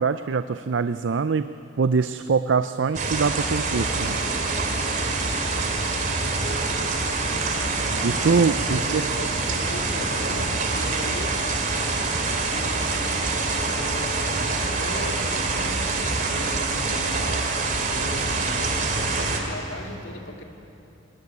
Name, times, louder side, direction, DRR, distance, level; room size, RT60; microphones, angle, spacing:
voice 1, 0.0-1.5 1.8-4.2 8.0-9.0, right 5 dB, 85° right, 12 dB, 0.5 m, -23 dB
sound 1, 2.9-19.4, right 3 dB, 45° right, 2.7 m, -25 dB
voice 2, 6.0-6.5 7.2-11.4 11.8-17.4 17.8-20.4, left 1 dB, 90° left, 3 dB, 2.2 m, -39 dB
21.0 x 18.5 x 9.6 m, 2.9 s
head